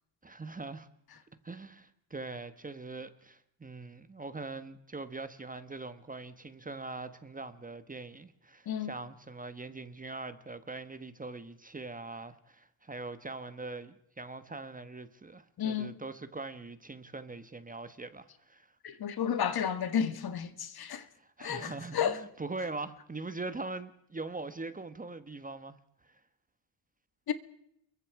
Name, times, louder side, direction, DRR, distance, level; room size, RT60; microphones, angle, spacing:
voice 1, 0.2-0.9 1.4-18.7 21.2-25.8 26.0-26.2, right 3 dB, 15° right, 1.2 m, -42 dB
voice 2, 15.6-15.9 18.8-21.1 21.4-22.2 27.3-27.4, left 8 dB, 45° left, 1.8 m, -32 dB
29.0 x 22.5 x 4.8 m
cardioid pair, 125°, 49 cm